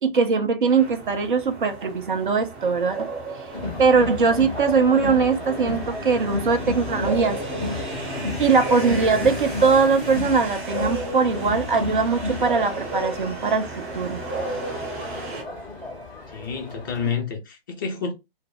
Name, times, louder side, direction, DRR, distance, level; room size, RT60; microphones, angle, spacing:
voice 1, 0.0-3.1 3.8-7.8 8.4-14.2, right 5 dB, 55° right, 0.7 m, -21 dB
sound 1, 0.7-15.4, right 2 dB, 25° right, 1.0 m, -33 dB
Crowd, 3.5-17.1, left 3 dB, 5° left, 0.9 m, -33 dB
sound 2, 4.7-11.0, left 4 dB, 45° left, 0.9 m, -41 dB
voice 2, 16.3-18.1, left 6 dB, 20° left, 0.5 m, -29 dB
2.2 x 2.0 x 3.5 m
figure-of-eight pair, 130°, 29 cm